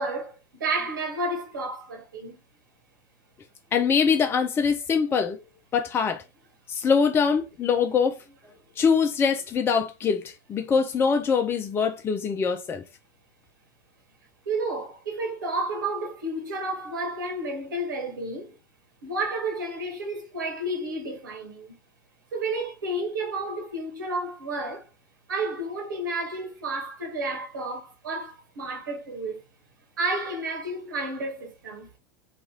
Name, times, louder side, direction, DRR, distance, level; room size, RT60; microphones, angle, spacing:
voice 1, 0.0-2.4 14.4-18.6 19.0-21.8 22.3-24.9 25.3-29.4 30.0-31.9, right 2 dB, 75° right, 1.3 m, -31 dB
voice 2, 3.7-5.4 5.7-6.2 6.7-8.2 8.8-12.8, left 6 dB, 20° left, 0.5 m, -23 dB
3.0 x 2.4 x 3.8 m
figure-of-eight pair, 85°, 11 cm